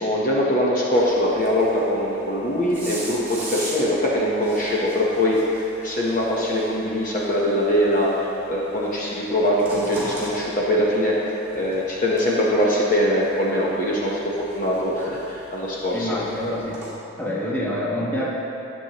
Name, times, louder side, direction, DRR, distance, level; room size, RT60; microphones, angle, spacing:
voice 1, 0.0-8.1 8.5-11.1 11.5-16.1, equal, 40° left, -4 dB, 0.9 m, -22 dB
sound 1, 1.0-16.9, right 1 dB, 10° right, 1.9 m, -40 dB
voice 2, 15.9-16.9 17.2-18.3, left 1 dB, 10° left, -6 dB, 1.1 m, -26 dB
11.5 x 7.2 x 3.0 m, 2.8 s
head